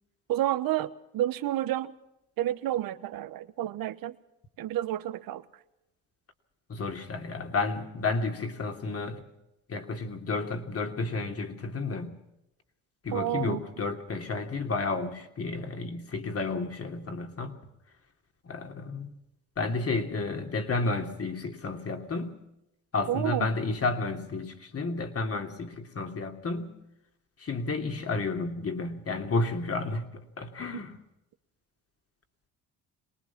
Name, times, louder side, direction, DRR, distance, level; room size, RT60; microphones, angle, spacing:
voice 1, 0.3-1.9 2.4-4.1 4.6-5.4 13.1-13.6 23.1-23.5 30.7-30.8, right 13 dB, 70° right, 14 dB, 1.2 m, -30 dB
voice 2, 6.7-9.2 9.7-12.2 13.0-17.6 18.4-19.1 19.6-22.4 22.9-26.8 27.4-31.0, left 3 dB, 40° left, 5 dB, 3.0 m, -31 dB
23.0 x 19.5 x 6.0 m, 0.89 s
supercardioid pair, 75°, 36 cm